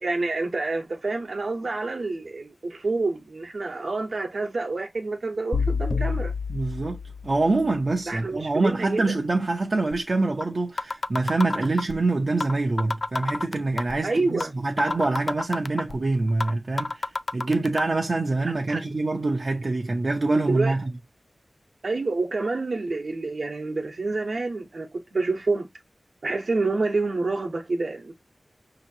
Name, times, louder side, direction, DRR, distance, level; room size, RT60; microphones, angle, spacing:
voice 1, 0.0-6.3 8.1-9.2 14.0-14.5 18.7-18.8 20.5-20.8 21.8-25.7 26.2-28.1, right 3 dB, 70° right, 1.0 m, -28 dB
sound 1, 5.5-7.6, left 5 dB, 35° left, 1.1 m, -28 dB
voice 2, 6.5-7.0 7.2-20.9, right 2 dB, 50° right, 0.7 m, -25 dB
sound 2, 9.9-10.0 10.4-10.5 10.8-12.0 12.4-12.5 12.8-14.0 14.4-14.5 14.8-16.0 16.4-16.5 16.8-17.8, left 3 dB, 55° left, 0.4 m, -28 dB
5.6 x 2.9 x 2.7 m
wide cardioid pair, 75°, 0 cm